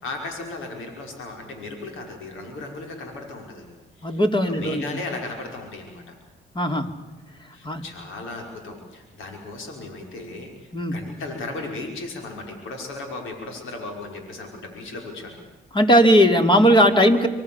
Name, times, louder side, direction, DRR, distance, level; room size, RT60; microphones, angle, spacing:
voice 1, 0.0-3.7 4.0-4.2 4.5-6.1 7.5-15.4, left 2 dB, 85° left, 2 dB, 5.7 m, -36 dB
voice 2, 4.0-4.8 6.5-6.9 7.6-7.8 10.7-11.0 15.7-17.3, equal, 25° left, 7 dB, 3.2 m, -17 dB
26.0 x 24.5 x 7.3 m, 1.2 s
cardioid pair, 90°, 20 cm